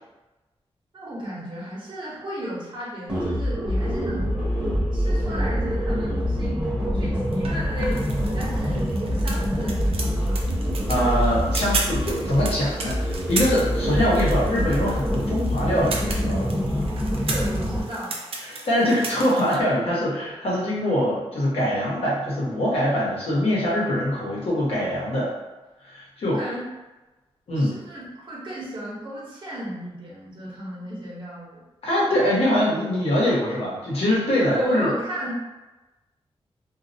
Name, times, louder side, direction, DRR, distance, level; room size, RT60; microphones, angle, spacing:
voice 1, 0.9-4.4 4.9-10.4 17.1-18.1 26.3-26.6 27.5-31.6 34.4-35.3, equal, 50° right, -6 dB, 0.9 m, -34 dB
sound 1, 3.1-17.8, equal, 10° right, 0.9 m, -25 dB
sound 2, 7.3-19.5, right 3 dB, 65° right, 0.4 m, -35 dB
voice 2, 10.9-16.5 18.4-25.3 25.8-26.4 27.5-27.8 31.8-34.9, equal, 70° left, -6 dB, 0.9 m, -23 dB
2.3 x 2.0 x 2.6 m, 1.1 s
wide cardioid pair, 105°, 10 cm